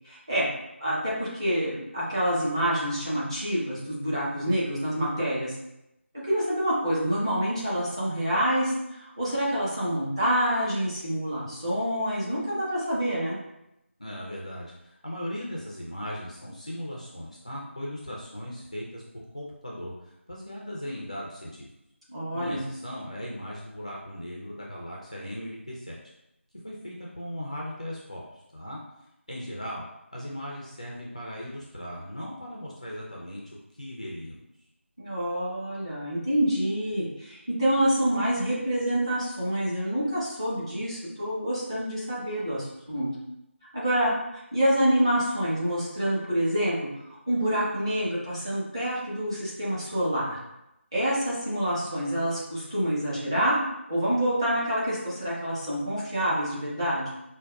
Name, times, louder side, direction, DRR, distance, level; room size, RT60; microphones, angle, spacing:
voice 1, 0.0-0.5 0.8-5.5 6.2-13.4 22.1-22.6 35.0-43.1 43.7-46.7 47.3-50.4 50.9-53.6 53.9-57.1, equal, 25° right, -8 dB, 0.9 m, -27 dB
voice 2, 14.0-21.7 22.3-26.0 26.6-28.2 28.5-28.8 29.3-29.9 30.1-33.4 33.8-34.4, equal, 30° left, -4 dB, 0.4 m, -38 dB
4.6 x 2.2 x 2.2 m, 0.86 s
figure-of-eight pair, 180°, 7 cm